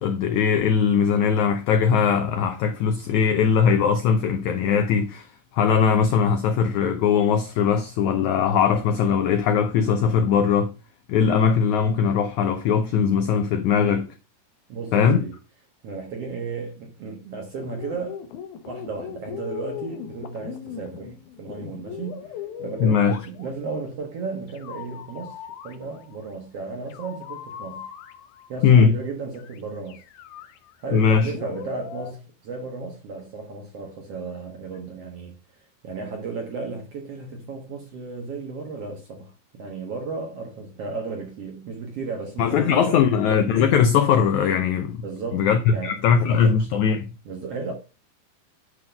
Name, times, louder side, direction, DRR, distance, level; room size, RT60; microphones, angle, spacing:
voice 1, 0.0-10.7 11.1-14.1 14.9-15.2 22.8-23.2 28.6-29.0 30.9-31.3 42.4-45.0 45.3-47.1, left 7 dB, 85° left, 1.6 m, -20 dB
voice 2, 14.7-15.4 15.8-18.2 18.7-25.4 25.6-27.9 28.5-30.0 30.8-35.4 35.8-43.1 45.0-45.9 46.2-46.6 47.3-47.7, right 4 dB, 60° right, 1.7 m, -34 dB
sound 1, 17.6-23.8 24.5-26.3 26.9-28.6 29.3-29.6 29.9-32.1, left 9 dB, 70° left, 1.9 m, -39 dB
10.5 x 3.8 x 5.3 m
omnidirectional pair, 4.3 m